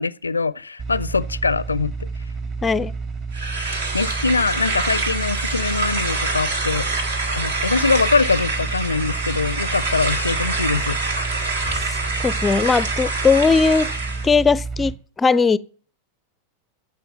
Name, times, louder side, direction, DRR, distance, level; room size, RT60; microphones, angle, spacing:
voice 1, 0.0-1.9 3.9-7.0 7.3-11.0, left 4 dB, 80° left, 0.4 m, -23 dB
sound 1, 0.8-14.9, right 4 dB, 35° right, 2.2 m, -30 dB
voice 2, 2.6-2.9 11.7-11.9 12.2-13.9 14.2-15.6, left 4 dB, 15° left, 0.5 m, -18 dB
sound 2, 3.3-14.3, right 3 dB, 65° right, 2.2 m, -26 dB
15.0 x 5.7 x 7.2 m
figure-of-eight pair, 90°, 0 cm